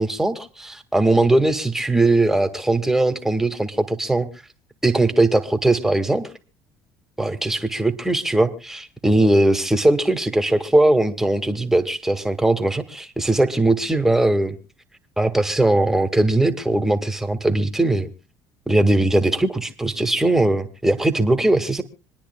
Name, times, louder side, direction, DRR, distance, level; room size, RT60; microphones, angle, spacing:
voice 1, 0.0-4.3 4.8-6.3 7.2-14.6 15.2-18.1 18.7-21.8, right 2 dB, 5° right, 7 dB, 1.9 m, -20 dB
26.5 x 10.0 x 2.3 m, 0.29 s
supercardioid pair, 80°, 7 cm